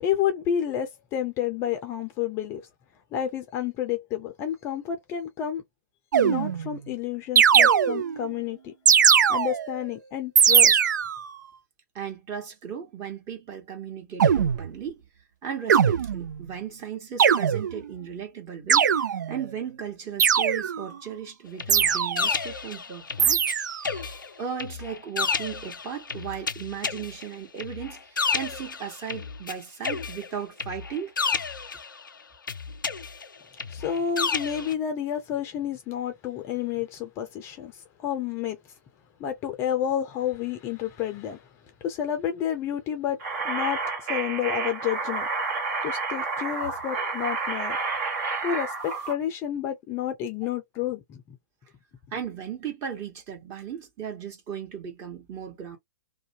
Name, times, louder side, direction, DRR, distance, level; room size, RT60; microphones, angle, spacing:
voice 1, 0.0-2.6 3.1-5.6 6.2-8.7 9.3-10.8 33.7-38.6 39.2-41.5 41.8-43.2 43.4-43.8 44.1-45.3 45.8-47.8 48.4-51.4, left 9 dB, 25° left, 0.5 m, -30 dB
sound 1, 6.1-6.8 7.4-8.3 8.9-9.8 10.4-11.3 14.2-14.7 15.7-16.4 17.2-17.9 18.7-19.4 20.2-20.9 21.7-22.4 23.2-23.9, right 8 dB, 70° right, 0.4 m, -20 dB
voice 2, 11.9-15.0 15.4-18.9 19.3-23.4 24.4-31.1 47.7-47.8 52.1-55.8, right 8 dB, 25° right, 1.2 m, -36 dB
sound 2, 21.6-23.5 23.8-29.5 29.8-32.1 32.5-34.7, left 5 dB, 85° left, 0.4 m, -31 dB
sound 3, 43.2-49.1, right 4 dB, 50° right, 1.3 m, -30 dB
2.5 x 2.2 x 2.8 m
figure-of-eight pair, 120°, 10 cm